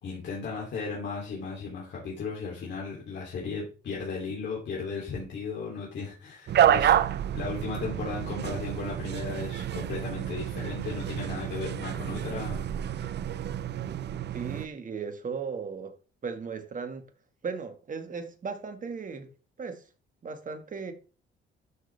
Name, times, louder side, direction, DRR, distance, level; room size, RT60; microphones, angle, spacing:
voice 1, 0.0-6.9 7.3-13.2, left 4 dB, 65° left, 3.2 m, -36 dB
sound 1, 6.5-14.7, right 10 dB, 60° right, 0.7 m, -29 dB
voice 2, 14.3-15.9 16.2-17.0 17.4-19.3 19.6-19.8 20.2-20.9, right 5 dB, 40° right, 2.0 m, -36 dB
12.5 x 6.6 x 3.5 m
cardioid pair, 90°, 20 cm